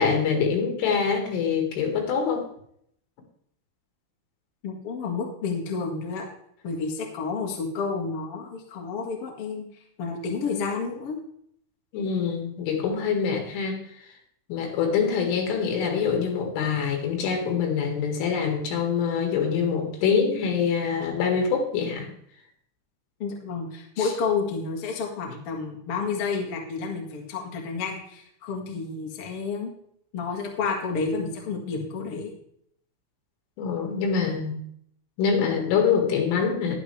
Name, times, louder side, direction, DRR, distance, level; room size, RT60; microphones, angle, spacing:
voice 1, 0.0-2.4 11.9-13.8 14.5-22.1 24.0-24.1 33.6-34.6 35.2-36.7, left 6 dB, 80° left, 3 dB, 4.2 m, -25 dB
voice 2, 4.6-6.2 6.6-9.6 10.0-11.2 23.2-29.7 30.1-32.3, left 5 dB, 60° left, 0 dB, 1.4 m, -30 dB
11.0 x 10.5 x 3.3 m, 0.68 s
omnidirectional pair, 5.6 m